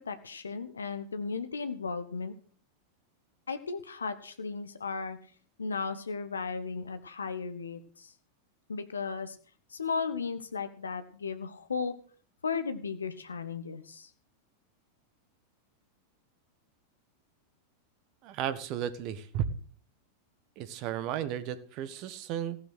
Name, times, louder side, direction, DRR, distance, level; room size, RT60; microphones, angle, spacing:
voice 1, 0.0-2.3 3.5-5.2 5.6-8.1 8.7-9.4 9.7-11.9 12.4-14.1, left 5 dB, 75° left, 10 dB, 1.3 m, -35 dB
voice 2, 18.2-19.4 20.6-22.6, right 10 dB, 40° right, 15 dB, 1.5 m, -34 dB
15.0 x 11.0 x 6.3 m, 0.42 s
figure-of-eight pair, 90°, 0 cm